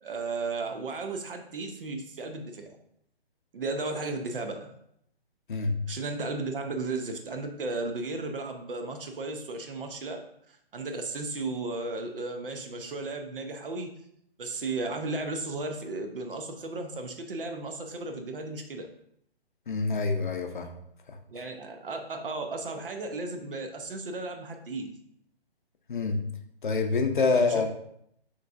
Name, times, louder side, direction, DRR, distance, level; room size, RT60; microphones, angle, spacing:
voice 1, 0.0-2.7 3.5-4.7 5.9-10.2 10.5-14.0 14.4-18.9 21.3-24.9 27.3-27.7, right 3 dB, 60° right, 5 dB, 0.7 m, -35 dB
voice 2, 5.5-5.8 19.7-20.8 25.9-26.2 26.6-27.7, left 4 dB, 50° left, 5 dB, 0.6 m, -26 dB
5.6 x 3.2 x 2.5 m, 0.72 s
hypercardioid pair, 170°, 31 cm